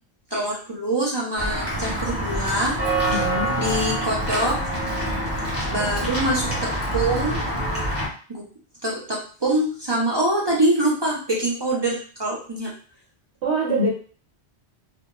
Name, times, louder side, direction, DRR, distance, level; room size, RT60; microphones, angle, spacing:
voice 1, 0.3-2.7 3.1-3.2 3.6-4.6 5.7-6.5 6.9-7.4 8.3-8.4 8.8-12.7, right 1 dB, 40° right, -4 dB, 0.3 m, -24 dB
Walk footsteps / Bell, 1.4-8.1, right 1 dB, 15° left, 1.0 m, -26 dB
voice 2, 3.1-3.6 5.7-6.1 13.4-13.9, right 1 dB, 80° right, -3 dB, 1.0 m, -25 dB
2.3 x 2.1 x 2.9 m, 0.41 s
omnidirectional pair, 1.1 m